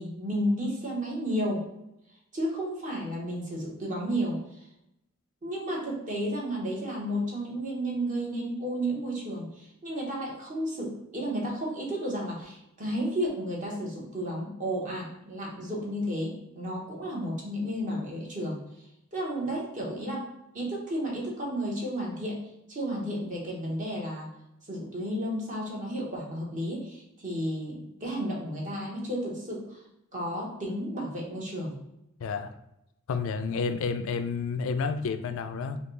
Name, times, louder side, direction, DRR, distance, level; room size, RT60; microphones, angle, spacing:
voice 1, 0.0-1.6 2.3-4.4 5.4-18.6 19.1-20.2 20.5-22.4 22.7-24.3 24.7-29.8 30.1-31.8, equal, 40° right, -3 dB, 1.1 m, -32 dB
voice 2, 32.2-32.6 33.1-35.8, left 5 dB, 70° left, 9 dB, 0.3 m, -30 dB
5.3 x 2.3 x 3.2 m, 0.84 s
head